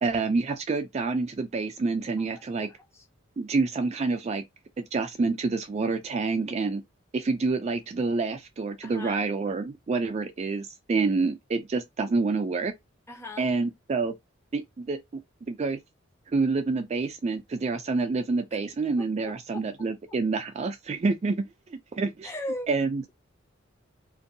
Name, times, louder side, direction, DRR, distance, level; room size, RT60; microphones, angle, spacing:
voice 1, 0.0-2.7 3.4-4.4 4.8-6.8 7.1-12.7 13.4-14.1 14.5-15.8 16.3-21.4 21.7-22.3 22.7-23.1, right 3 dB, 35° right, 0.3 m, -28 dB
voice 2, 2.6-3.0 8.8-9.2 13.1-13.6 18.5-18.6 19.0-19.6 22.2-22.7, left 1 dB, 15° left, 0.6 m, -39 dB
2.5 x 2.3 x 2.7 m
head